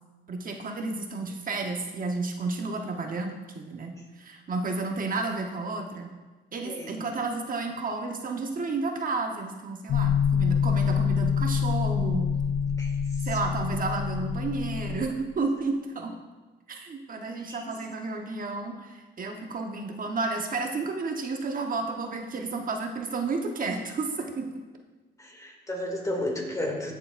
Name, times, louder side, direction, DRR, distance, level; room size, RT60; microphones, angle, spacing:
voice 1, 0.3-6.1 6.5-12.3 13.2-16.2 16.7-24.5, right 3 dB, 45° right, 3 dB, 1.0 m, -31 dB
voice 2, 6.6-7.0 12.8-12.9 17.4-17.7 25.2-26.9, left 1 dB, 15° left, 1 dB, 2.2 m, -33 dB
sound 1, 9.9-15.1, left 7 dB, 50° left, 0.6 m, -26 dB
14.5 x 6.8 x 2.5 m, 1.2 s
cardioid pair, 90°, 20 cm